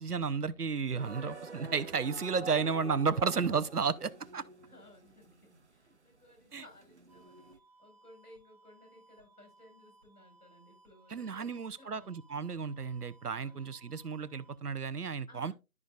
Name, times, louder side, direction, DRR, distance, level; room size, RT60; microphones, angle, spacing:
voice 1, 0.0-4.4 6.5-6.6 11.1-15.5, right 5 dB, 85° right, 0.9 m, -33 dB
sound 1, 0.9-7.6, right 3 dB, 50° right, 0.9 m, -48 dB
voice 2, 4.7-7.5 7.8-12.1 13.3-13.7 15.3-15.5, left 1 dB, 80° left, 4.8 m, -58 dB
sound 2, 7.1-14.6, right 2 dB, 5° left, 2.3 m, -63 dB
13.0 x 4.8 x 2.4 m
figure-of-eight pair, 170°, 45 cm